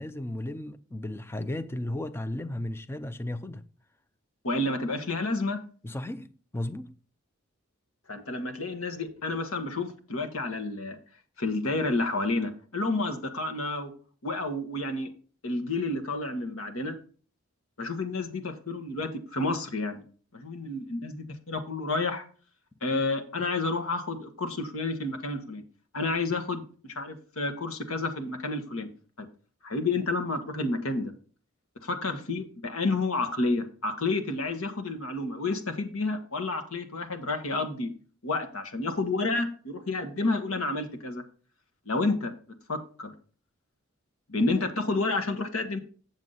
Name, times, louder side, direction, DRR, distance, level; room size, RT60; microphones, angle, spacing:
voice 1, 0.0-3.7 5.8-7.0, left 1 dB, 10° left, 0.4 m, -35 dB
voice 2, 4.4-5.6 8.1-11.0 11.4-13.9 14.2-15.1 15.4-17.0 17.8-20.0 20.3-22.2 22.8-25.6 25.9-28.9 29.6-31.1 31.8-37.9 38.2-41.2 41.9-42.3 42.7-43.1 44.3-45.8, left 2 dB, 80° left, 1.4 m, -30 dB
7.8 x 7.3 x 4.0 m
head